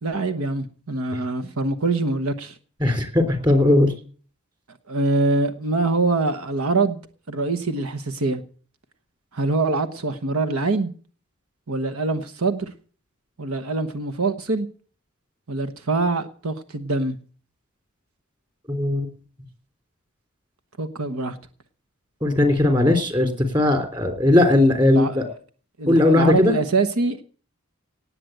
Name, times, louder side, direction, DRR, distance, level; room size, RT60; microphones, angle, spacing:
voice 1, 0.0-2.6 4.9-7.0 7.3-8.4 9.3-10.9 11.7-12.7 13.4-14.7 15.5-17.2 20.8-21.4 24.8-25.3 25.8-27.2, right 3 dB, 85° right, 11 dB, 1.2 m, -24 dB
voice 2, 2.8-3.9 18.7-19.1 22.2-25.2 25.9-26.5, left 2 dB, 20° right, 6 dB, 3.4 m, -18 dB
18.5 x 7.8 x 7.9 m, 0.44 s
head